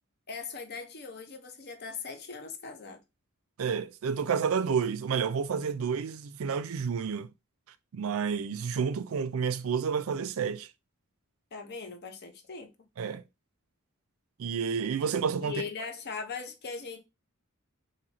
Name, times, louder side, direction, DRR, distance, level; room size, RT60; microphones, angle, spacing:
voice 1, 0.3-3.0 11.5-12.7 15.4-17.0, left 5 dB, 45° left, 0.6 m, -40 dB
voice 2, 3.6-7.3 7.9-10.7 13.0-13.2 14.4-15.5, right 6 dB, 65° right, 0.4 m, -30 dB
2.9 x 2.7 x 4.0 m
head